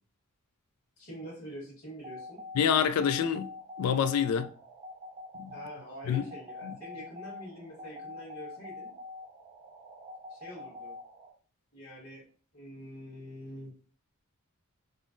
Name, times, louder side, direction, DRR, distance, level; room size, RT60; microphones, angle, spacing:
voice 1, 1.0-2.4 5.5-8.9 10.3-10.9 11.7-12.2 12.5-13.7, equal, 50° left, 1.3 m, -45 dB
sound 1, 2.0-11.3, left 2 dB, 25° right, 0.6 m, -45 dB
voice 2, 2.5-3.5 3.8-4.5 5.4-5.5 6.1-6.2 6.6-6.8, left 8 dB, 80° left, 0.3 m, -26 dB
3.7 x 2.0 x 2.5 m
head